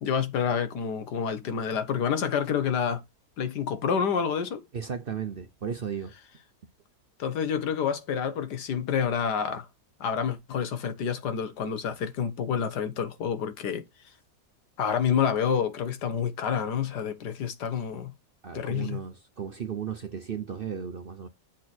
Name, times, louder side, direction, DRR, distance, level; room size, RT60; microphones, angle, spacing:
voice 1, 0.0-3.0 3.4-4.6 7.2-9.7 10.0-13.8 14.8-18.1 18.5-19.0, left 7 dB, 85° left, 1.7 m, -28 dB
voice 2, 4.7-6.1 18.4-21.3, right 7 dB, 50° right, 0.7 m, -35 dB
7.4 x 4.4 x 4.4 m
omnidirectional pair, 1.7 m